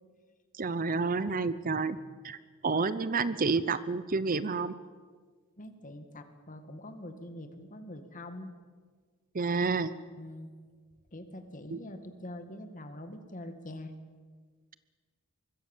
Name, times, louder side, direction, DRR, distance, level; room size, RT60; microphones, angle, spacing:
voice 1, 0.6-2.0 2.2-2.4 2.6-4.7 9.3-9.9 11.7-11.8, right 4 dB, 40° right, 15 dB, 0.7 m, -29 dB
voice 2, 1.6-2.2 5.6-8.5 10.1-10.5 11.1-13.9, left 1 dB, 35° left, 7 dB, 2.2 m, -44 dB
24.5 x 21.0 x 7.3 m, 1.5 s
head